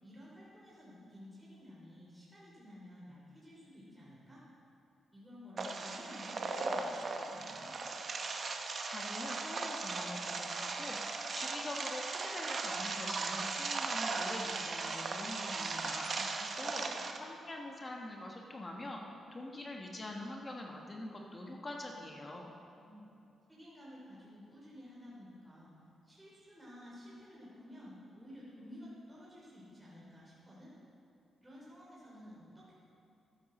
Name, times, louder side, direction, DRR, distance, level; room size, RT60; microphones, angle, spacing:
voice 1, 0.0-4.4 5.1-7.7 16.1-17.0 22.7-23.1 23.5-25.7 26.0-30.7 31.4-32.7, left 1 dB, 10° right, -7 dB, 3.0 m, -53 dB
sound 1, 5.6-17.2, right 4 dB, 50° right, 0.9 m, -38 dB
voice 2, 8.8-16.1 16.6-16.8 17.2-19.0 19.3-22.5, left 1 dB, 30° left, 0 dB, 1.3 m, -44 dB
13.0 x 10.0 x 4.3 m, 2.7 s
cardioid pair, 85°, 0 cm